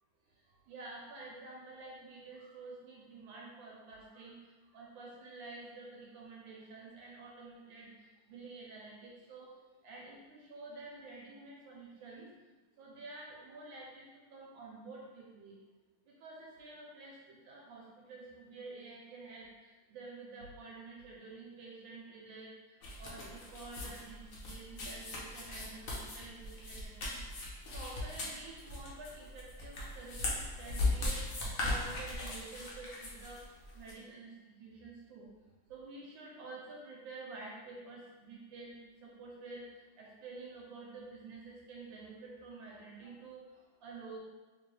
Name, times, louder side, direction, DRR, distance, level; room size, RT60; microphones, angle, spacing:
voice 1, 0.7-4.4 4.7-9.5 9.8-12.3 12.8-15.6 16.1-22.5 23.0-33.4 33.7-35.3 35.7-38.8 39.0-44.2, right 3 dB, 75° right, -3 dB, 1.2 m, -49 dB
sound 1, 22.8-33.9, left 2 dB, 70° left, 0.8 m, -39 dB
3.3 x 3.0 x 3.1 m, 1.2 s
omnidirectional pair, 2.4 m